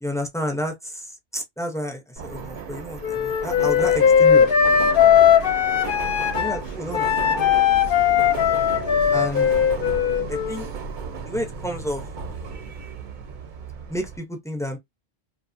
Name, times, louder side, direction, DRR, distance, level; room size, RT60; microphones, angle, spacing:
voice 1, 0.0-4.5 6.3-7.4 9.1-9.5 10.3-10.7 11.3-12.0 13.9-14.8, equal, 5° left, 0.4 m, -30 dB
Subway metro underground, 2.2-14.2, right 5 dB, 55° right, 0.6 m, -34 dB
Wind instrument woodwind instrument, 3.0-6.6 6.9-10.7, left 8 dB, 60° left, 0.7 m, -19 dB
2.7 x 2.0 x 2.5 m
omnidirectional pair, 1.2 m